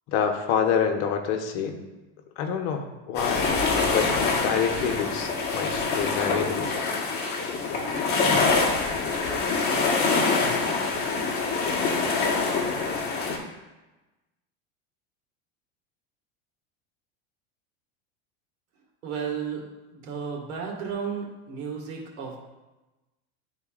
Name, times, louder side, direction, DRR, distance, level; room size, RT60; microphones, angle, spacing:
voice 1, 0.1-1.8 2.4-6.7, left 7 dB, 55° left, 5 dB, 1.0 m, -27 dB
sound 1, 3.1-13.4, left 4 dB, 30° left, 1.3 m, -25 dB
voice 2, 19.0-19.6 19.9-22.4, right 6 dB, 80° right, -1 dB, 2.0 m, -33 dB
11.5 x 4.0 x 2.5 m, 1.1 s
supercardioid pair, 130°, 33 cm